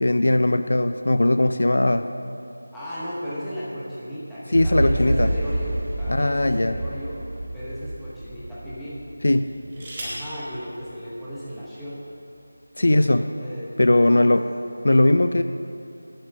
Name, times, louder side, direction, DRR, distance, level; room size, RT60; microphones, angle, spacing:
voice 1, 0.0-2.1 4.5-5.3 6.1-6.8 9.2-9.5 12.8-13.3 13.8-14.4 14.8-15.4, left 1 dB, 60° left, 10 dB, 0.4 m, -19 dB
voice 2, 2.7-7.2 7.5-9.0 9.7-12.1 12.8-14.4, equal, ahead, -13 dB, 0.8 m, -36 dB
sound 1, 4.5-10.5 10.9-11.0, right 1 dB, 70° right, 0.7 m, -29 dB
sound 2, 9.3-10.3 11.5-11.6 11.9-12.3, right 1 dB, 20° right, 1.8 m, -39 dB
7.5 x 7.4 x 7.8 m, 2.6 s
figure-of-eight pair, 180°, 0 cm